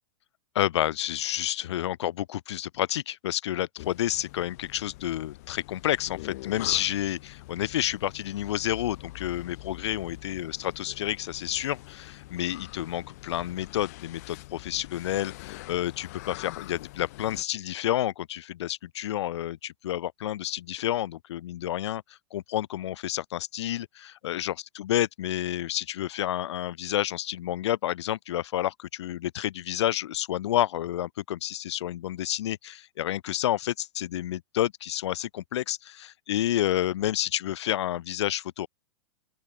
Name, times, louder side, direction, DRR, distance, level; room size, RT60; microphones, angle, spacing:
voice 1, 0.5-22.0 22.3-38.7, left 12 dB, 60° left, 0.4 m, -30 dB
sound 1, 3.8-17.4, left 20 dB, 30° left, 0.8 m, -44 dB
open air
supercardioid pair, 180°, 16 cm